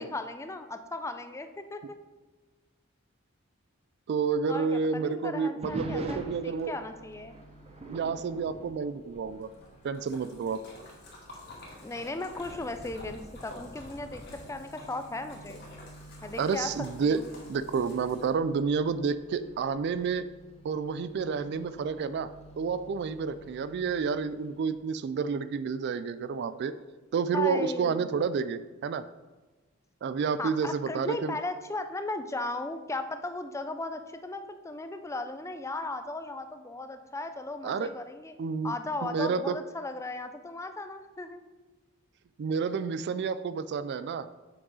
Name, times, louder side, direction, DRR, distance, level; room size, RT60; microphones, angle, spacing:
voice 1, 0.0-2.0 4.5-7.4 11.8-15.6 16.2-16.7 17.0-17.3 27.3-28.1 30.4-38.3 38.6-41.4, left 2 dB, 15° left, 8 dB, 0.4 m, -36 dB
voice 2, 4.1-6.7 7.9-9.5 9.8-10.6 16.4-17.2 17.5-20.3 20.6-22.3 22.6-26.7 27.1-29.1 30.0-31.4 37.6-37.9 38.4-38.7 39.0-39.6 42.4-44.3, right 5 dB, 55° right, 14 dB, 0.3 m, -30 dB
sound 1, 5.6-9.8 10.1-10.4 11.1-11.2 11.9-14.6 16.4-16.9, right 1 dB, 30° right, 0.7 m, -44 dB
Microwave oven, 6.5-24.8, right 1 dB, 30° left, 0.9 m, -52 dB
Splash splatter, 9.4-18.5, left 2 dB, 55° left, 2.1 m, -50 dB
7.7 x 6.0 x 4.0 m, 1.3 s
head